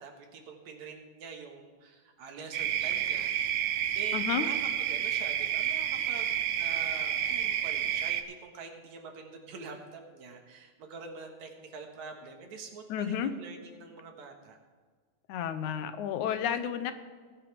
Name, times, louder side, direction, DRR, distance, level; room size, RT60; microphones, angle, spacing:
voice 1, 0.0-14.6, right 4 dB, 70° right, 3 dB, 2.9 m, -46 dB
sound 1, 2.5-8.2, right 10 dB, 90° right, 2.1 m, -30 dB
voice 2, 4.1-4.5 12.9-13.3 15.3-16.9, left 9 dB, 85° left, 10 dB, 2.2 m, -31 dB
19.5 x 10.0 x 3.4 m, 1.5 s
omnidirectional pair, 3.4 m